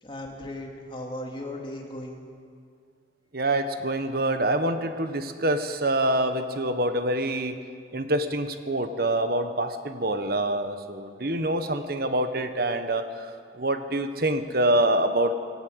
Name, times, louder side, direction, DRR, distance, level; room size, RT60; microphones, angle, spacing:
voice 1, 0.0-2.2, left 1 dB, 25° left, 1 dB, 2.5 m, -37 dB
voice 2, 3.3-7.6 7.9-13.3 13.6-15.3, right 1 dB, 55° right, 8 dB, 1.4 m, -26 dB
19.5 x 17.5 x 8.2 m, 2.2 s
head